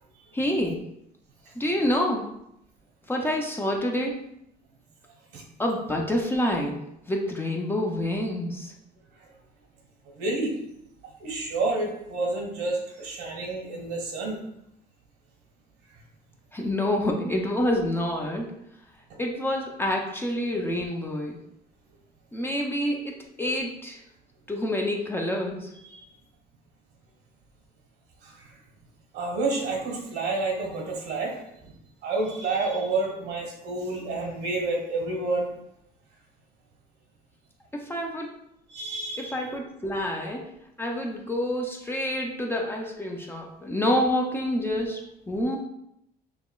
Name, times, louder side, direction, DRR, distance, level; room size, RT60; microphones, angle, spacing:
voice 1, 0.3-0.9 1.6-2.3 3.1-4.2 5.6-6.8 7.1-8.7 16.5-18.5 19.2-21.4 22.3-24.0 24.5-25.7 37.7-38.3 39.2-40.5 40.8-45.6, left 1 dB, 15° left, 0 dB, 0.6 m, -27 dB
voice 2, 10.2-10.5 11.2-14.4 25.9-26.0 28.2-28.3 29.1-31.3 32.0-35.5 38.7-39.5, right 3 dB, 90° right, -1 dB, 1.5 m, -29 dB
5.9 x 2.8 x 2.4 m, 0.77 s
cardioid pair, 110°, 17 cm